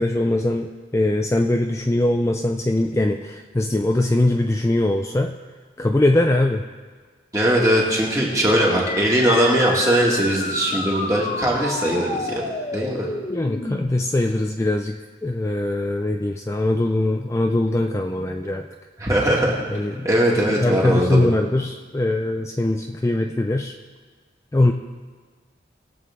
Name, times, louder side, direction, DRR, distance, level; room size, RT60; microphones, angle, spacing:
voice 1, 0.0-5.3 5.8-6.6 13.3-14.9 15.2-18.7 19.7-20.1 20.4-23.7 24.5-24.7, left 1 dB, 15° left, 4 dB, 0.3 m, -21 dB
voice 2, 7.3-12.4 12.7-13.1 19.0-19.6 20.0-21.3, right 1 dB, 20° right, -3 dB, 2.1 m, -20 dB
sound 1, 8.9-13.9, left 2 dB, 35° left, 0.9 m, -29 dB
20.5 x 7.8 x 3.7 m, 1.5 s
head